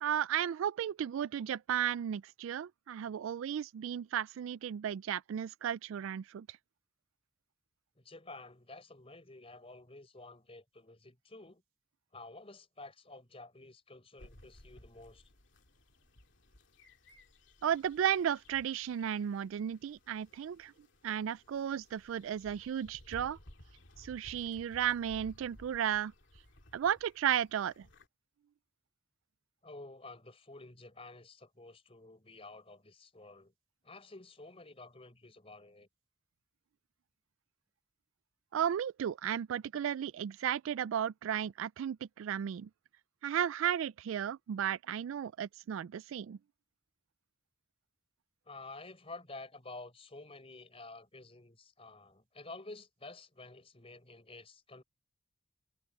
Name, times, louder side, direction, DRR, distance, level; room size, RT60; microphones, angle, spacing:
voice 1, 0.0-6.6 17.6-20.7 21.0-23.4 24.0-26.1 26.7-27.9 38.5-42.7 43.2-46.4, right 9 dB, 75° right, 0.3 m, -34 dB
voice 2, 8.0-11.6 12.1-15.3 29.6-33.5 33.8-35.9 48.5-54.8, left 2 dB, 30° left, 4.2 m, -51 dB
sound 1, 14.2-28.1, left 1 dB, 60° left, 3.0 m, -58 dB
head